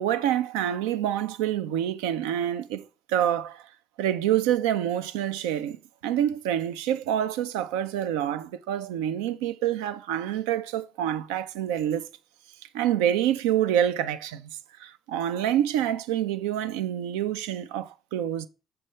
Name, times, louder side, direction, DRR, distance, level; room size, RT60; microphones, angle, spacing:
voice 1, 0.0-2.8 3.1-3.7 4.0-5.8 6.0-12.1 12.7-14.5 14.8-18.5, right 11 dB, 80° right, 0.3 m, -27 dB
6.6 x 5.5 x 3.1 m
hypercardioid pair, 50°, 0 cm